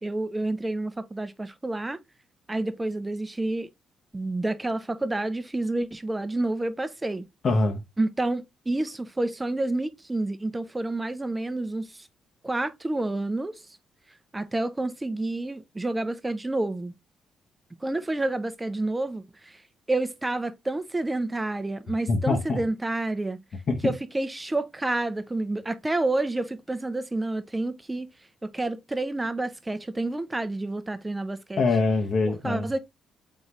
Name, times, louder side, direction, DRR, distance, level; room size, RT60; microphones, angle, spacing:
voice 1, 0.0-2.0 2.5-3.7 4.1-7.2 8.0-12.1 12.4-13.6 14.3-16.9 17.8-19.6 19.9-23.4 23.8-28.1 28.4-31.6 32.4-32.8, right 2 dB, 15° right, 0.6 m, -29 dB
voice 2, 7.4-7.8 22.1-22.6 23.7-23.9 31.6-32.7, left 3 dB, 50° left, 0.9 m, -24 dB
3.9 x 3.8 x 2.9 m
cardioid pair, 90°, 0 cm